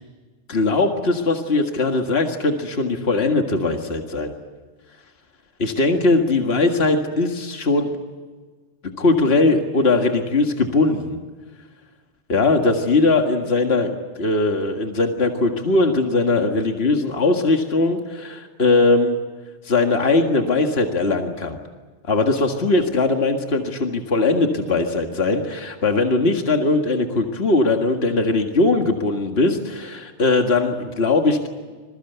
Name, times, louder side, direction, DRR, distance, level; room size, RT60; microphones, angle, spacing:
voice 1, 0.5-4.3 5.6-7.9 8.8-11.2 12.3-19.2 19.7-21.6 22.1-31.5, left 3 dB, 60° left, 4 dB, 2.1 m, -20 dB
27.0 x 21.5 x 8.1 m, 1.4 s
omnidirectional pair, 1.2 m